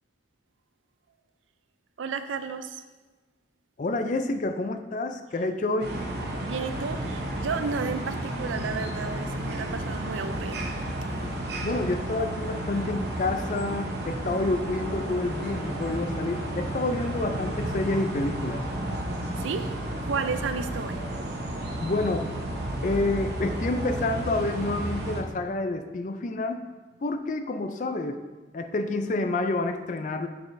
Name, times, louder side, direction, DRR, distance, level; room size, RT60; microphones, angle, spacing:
voice 1, 2.0-2.8 6.4-10.7 19.4-21.0, right 5 dB, 90° right, 10 dB, 0.4 m, -32 dB
voice 2, 3.8-5.9 11.6-18.6 21.8-22.3 22.8-26.6 27.0-28.2 28.5-30.3, left 2 dB, 40° left, 7 dB, 0.4 m, -28 dB
sound 1, 5.8-25.2, right 1 dB, 60° right, 0.8 m, -32 dB
6.8 x 6.3 x 2.6 m, 1.3 s
head